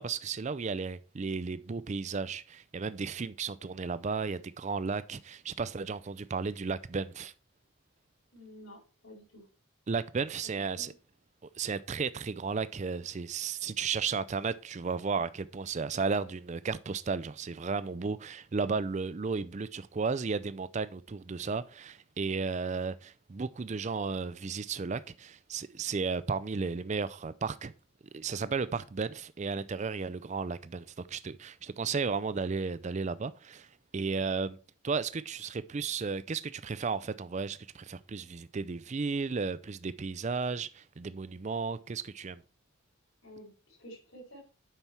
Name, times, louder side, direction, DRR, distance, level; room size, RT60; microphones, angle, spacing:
voice 1, 0.0-7.3 9.9-10.9 11.6-27.7 28.1-33.7 33.9-34.6 34.8-42.4, right 4 dB, 35° right, 0.4 m, -34 dB
voice 2, 8.3-9.5 10.4-10.9 43.2-44.4, equal, 75° left, 4.7 m, -51 dB
9.0 x 5.8 x 4.6 m
head